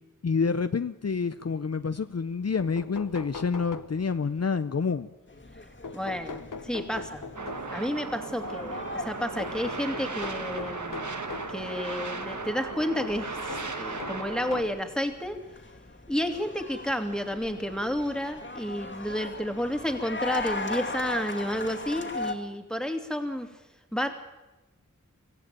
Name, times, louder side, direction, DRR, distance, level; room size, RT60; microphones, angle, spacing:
voice 1, 0.2-5.1, left 5 dB, 55° left, 11 dB, 0.7 m, -28 dB
sound 1, 2.3-2.4 2.6-4.4 5.8-7.9 9.4-11.6 13.0-14.9 15.7-15.8 17.2-17.3 17.6-17.7, left 4 dB, 85° left, 1.1 m, -41 dB
sound 2, 5.3-22.3, left 2 dB, 35° left, 2.3 m, -40 dB
voice 2, 5.9-7.2 7.7-11.1 11.5-15.4 16.1-23.5 23.9-24.1, equal, ahead, 6 dB, 2.6 m, -31 dB
sound 3, 7.4-14.6, right 3 dB, 65° right, 1.7 m, -36 dB
24.0 x 15.5 x 9.0 m, 1.1 s
wide cardioid pair, 50°, 31 cm